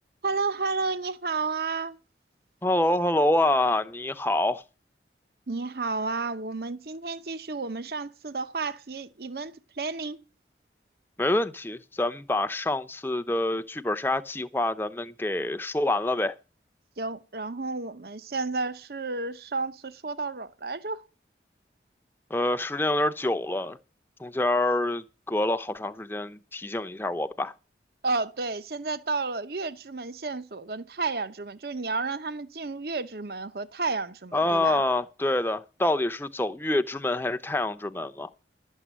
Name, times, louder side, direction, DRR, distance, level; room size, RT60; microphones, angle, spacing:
voice 1, 0.2-2.0 5.5-10.2 17.0-21.0 28.0-34.8, right 3 dB, 60° right, 0.8 m, -31 dB
voice 2, 2.6-4.6 11.2-16.3 22.3-23.8 24.2-27.5 34.3-38.3, left 1 dB, 10° left, 0.6 m, -26 dB
12.0 x 7.5 x 8.0 m
head